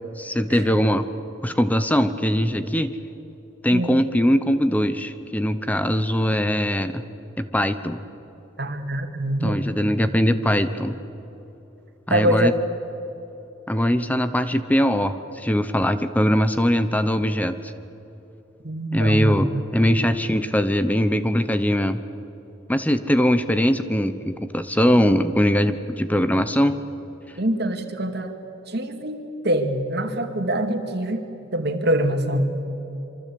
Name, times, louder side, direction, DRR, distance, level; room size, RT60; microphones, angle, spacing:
voice 1, 0.2-1.1 1.4-3.0 3.6-7.0 7.4-8.0 9.4-11.0 12.1-12.5 13.7-17.5 18.9-22.0 22.7-26.8, equal, 10° left, 11 dB, 0.9 m, -21 dB
voice 2, 3.7-4.0 8.6-9.6 12.1-12.5 18.6-19.6 27.4-28.3 28.7-31.2 31.5-32.5, right 1 dB, 55° right, 6 dB, 2.4 m, -24 dB
26.5 x 24.5 x 8.6 m, 2.9 s
head